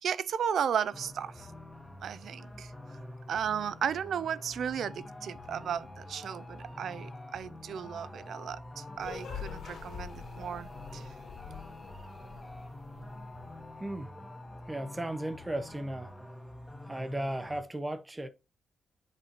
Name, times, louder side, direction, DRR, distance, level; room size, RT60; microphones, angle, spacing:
voice 1, 0.0-1.5 2.0-2.7 3.3-11.1, right 8 dB, 65° right, 0.4 m, -35 dB
sound 1, 0.9-17.6, left 1 dB, 5° left, 0.9 m, -46 dB
sound 2, 9.0-13.6, left 7 dB, 75° left, 2.0 m, -45 dB
voice 2, 13.8-14.1 14.7-16.1 16.9-18.3, right 1 dB, 10° right, 0.5 m, -35 dB
7.9 x 4.3 x 2.9 m
cardioid pair, 130°, 0 cm